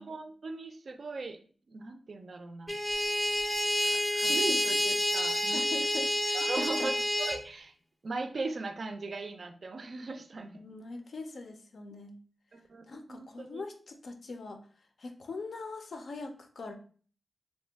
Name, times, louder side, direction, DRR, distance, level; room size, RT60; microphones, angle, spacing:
voice 1, 0.0-1.4 1.7-2.8 3.8-5.8 6.3-7.7 8.0-10.6 12.5-13.6, right 3 dB, 55° right, 7 dB, 0.4 m, -39 dB
sound 1, 2.7-7.4, equal, 15° left, 0.5 m, -29 dB
voice 2, 4.3-4.6 5.5-6.9 10.6-12.2 12.9-14.6 15.0-16.7, left 3 dB, 65° left, 5 dB, 0.4 m, -42 dB
2.8 x 2.1 x 3.3 m, 0.43 s
wide cardioid pair, 100°, 0 cm